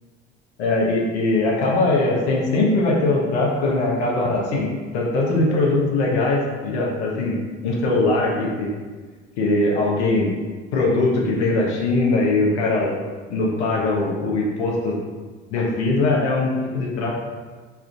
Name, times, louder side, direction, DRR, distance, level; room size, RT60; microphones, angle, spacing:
voice 1, 0.6-8.7 9.4-10.3 10.7-12.9 13.3-15.0 15.5-17.1, left 2 dB, 85° left, -2 dB, 0.8 m, -21 dB
3.4 x 2.5 x 4.5 m, 1.4 s
hypercardioid pair, 65°, 33 cm